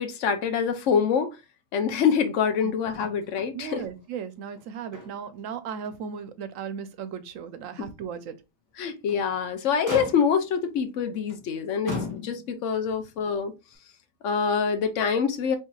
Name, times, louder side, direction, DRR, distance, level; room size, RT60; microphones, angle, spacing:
voice 1, 0.0-1.4 1.7-3.8 8.8-13.5 14.2-15.6, left 6 dB, 70° left, 1.0 m, -25 dB
Motor vehicle (road), 2.9-3.5 3.8-4.0 4.5-5.4 5.8-6.0 6.5-6.6 8.8-9.3 9.9-10.5 11.3-11.5 11.9-12.7 13.7-13.8, left 3 dB, 15° left, 0.9 m, -37 dB
voice 2, 3.5-8.4, right 7 dB, 90° right, 1.0 m, -36 dB
4.5 x 3.1 x 2.3 m
omnidirectional pair, 1.3 m